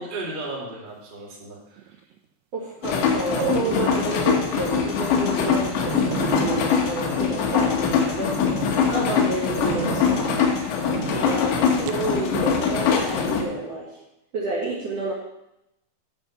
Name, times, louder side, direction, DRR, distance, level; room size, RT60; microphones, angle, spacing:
voice 1, 0.0-1.9 8.7-9.2 11.1-11.4, right 2 dB, 25° right, -5 dB, 1.0 m, -36 dB
sound 1, 1.8-2.2 3.4-4.1 4.6-4.7 5.2-5.3 5.5-5.6 5.9-7.9 8.3-8.8 9.7-10.5 10.9-11.3 11.9-12.1, right 10 dB, 80° right, 2.6 m, -32 dB
voice 2, 2.5-10.1 10.4-10.6 11.1-13.9 14.3-15.1, right 2 dB, 60° right, -5 dB, 1.7 m, -30 dB
sound 2, 2.8-13.4, left 6 dB, 85° left, 3.4 m, -23 dB
8.8 x 5.3 x 7.3 m, 0.86 s
omnidirectional pair, 4.9 m